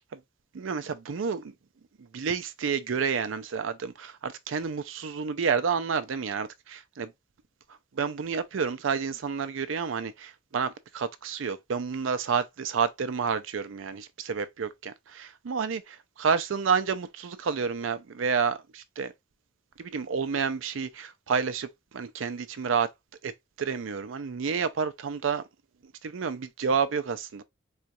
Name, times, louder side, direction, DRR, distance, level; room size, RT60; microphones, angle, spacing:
voice 1, 0.5-1.5 2.0-7.1 7.9-19.1 19.8-22.9 23.2-23.3 23.6-25.4 25.8-27.4, right 6 dB, 80° right, 0.5 m, -30 dB
4.4 x 2.3 x 2.6 m
head